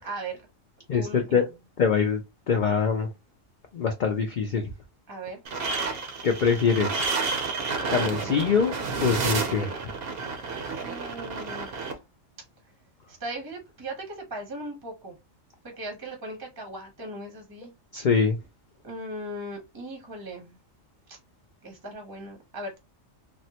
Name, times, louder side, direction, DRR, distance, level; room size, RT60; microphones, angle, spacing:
voice 1, 0.0-0.5 0.9-1.5 5.1-5.4 8.0-8.4 10.8-12.0 13.1-15.2 15.6-17.7 18.8-20.6 21.1-21.2 21.6-22.8, right 1 dB, 20° right, 0.6 m, -38 dB
voice 2, 1.8-2.2 2.5-3.1 3.7-4.7 6.2-7.1 7.9-8.7 9.0-9.7 17.9-18.4, left 6 dB, 80° left, 0.4 m, -23 dB
sound 1, 5.4-11.9, right 4 dB, 55° right, 0.7 m, -30 dB
3.5 x 2.1 x 2.7 m
omnidirectional pair, 1.4 m